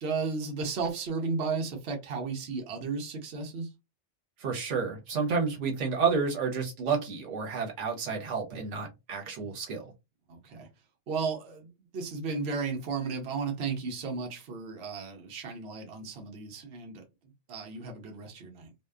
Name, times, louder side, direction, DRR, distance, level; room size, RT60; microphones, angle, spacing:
voice 1, 0.0-3.7 10.3-10.7 11.1-17.0 17.5-18.7, right 4 dB, 65° right, 1.0 m, -34 dB
voice 2, 4.4-9.9, right 5 dB, 80° right, 1.1 m, -30 dB
2.7 x 2.1 x 2.2 m
omnidirectional pair, 1.2 m